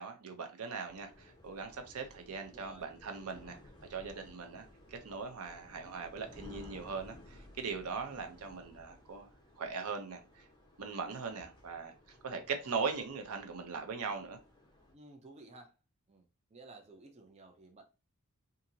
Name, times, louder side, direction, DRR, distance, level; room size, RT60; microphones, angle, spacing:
voice 1, 0.0-3.6 3.9-9.3 9.6-10.4 10.8-11.9 12.2-14.4, right 5 dB, 80° right, 0.5 m, -40 dB
sound 1, 0.8-14.9, left 1 dB, 20° left, 0.7 m, -57 dB
voice 2, 2.4-2.9 14.9-15.7 16.1-16.3 16.5-17.8, right 2 dB, 30° right, 0.4 m, -54 dB
2.8 x 2.5 x 2.6 m
head